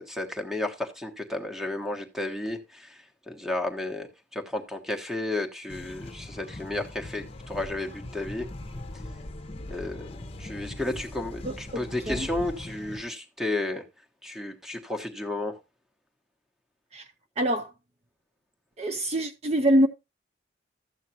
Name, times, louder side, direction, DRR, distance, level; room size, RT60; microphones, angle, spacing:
voice 1, 0.0-3.0 3.3-8.5 9.7-10.1 10.4-13.8 14.2-15.6, left 2 dB, 5° right, 1.2 m, -32 dB
sound 1, 5.7-13.0, left 1 dB, 35° left, 0.9 m, -40 dB
voice 2, 11.4-12.3 16.9-17.1 17.4-17.7 18.8-19.9, equal, 35° right, 0.6 m, -25 dB
13.5 x 8.2 x 2.8 m
head